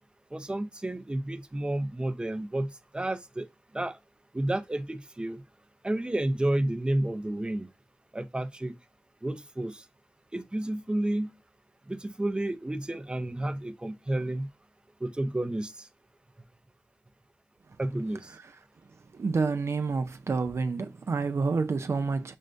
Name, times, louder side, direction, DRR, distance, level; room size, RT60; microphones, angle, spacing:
voice 1, 0.3-3.5 3.7-4.0 4.3-5.4 5.8-7.7 8.1-8.8 9.2-9.8 10.3-11.3 11.9-14.5 15.0-15.9 17.8-18.3, right 1 dB, 20° right, 0.6 m, -31 dB
voice 2, 19.1-22.3, right 4 dB, 65° right, 0.4 m, -28 dB
6.2 x 2.1 x 2.5 m
cardioid pair, 45°, 5 cm